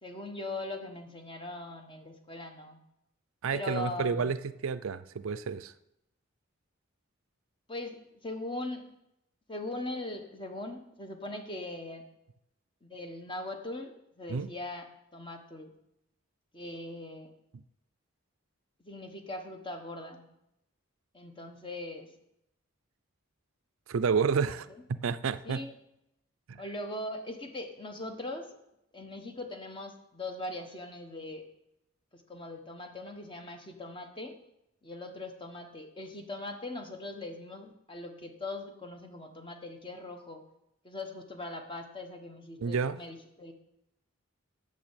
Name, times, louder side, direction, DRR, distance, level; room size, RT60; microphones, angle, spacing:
voice 1, 0.0-2.8 3.5-4.3 7.7-8.8 9.5-12.0 12.8-15.7 16.5-17.3 18.8-20.3 21.1-22.1 24.7-24.8 25.4-25.7 26.5-28.6 28.9-31.4 32.1-34.3 34.8-40.4 40.8-43.5, left 2 dB, 25° left, 5 dB, 1.2 m, -40 dB
voice 2, 3.4-5.7 14.3-14.5 17.5-17.6 23.9-25.6 26.5-26.6 42.6-43.0, right 5 dB, 75° right, 15 dB, 0.4 m, -30 dB
8.7 x 6.8 x 8.2 m, 0.84 s
head